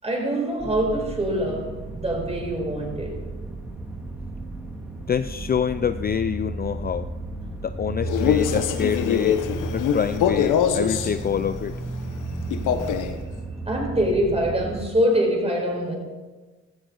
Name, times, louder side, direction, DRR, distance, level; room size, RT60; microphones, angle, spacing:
voice 1, 0.0-3.2 13.7-15.9, equal, 20° right, 4.8 m, -24 dB
sound 1, 0.6-14.8, right 2 dB, 5° right, 2.4 m, -33 dB
voice 2, 5.1-7.1 7.6-9.4 9.7-11.7, left 8 dB, 30° left, 0.5 m, -26 dB
Male speech man speaking, 8.0-11.1 12.5-13.2, left 8 dB, 85° left, 1.1 m, -23 dB
16.0 x 13.5 x 4.0 m
cardioid pair, 90°, 30 cm